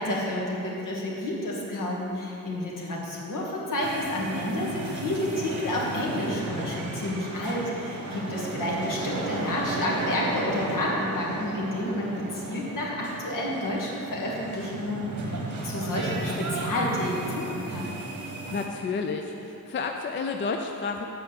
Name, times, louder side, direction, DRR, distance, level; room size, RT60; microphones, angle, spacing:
voice 1, 0.0-17.9, left 1 dB, 70° left, -3 dB, 1.8 m, -30 dB
sound 1, 3.8-18.7, right 2 dB, 60° right, 1.2 m, -34 dB
voice 2, 18.5-21.1, left 4 dB, 35° left, 4 dB, 0.4 m, -30 dB
7.8 x 5.0 x 7.1 m, 2.8 s
wide cardioid pair, 155°, 34 cm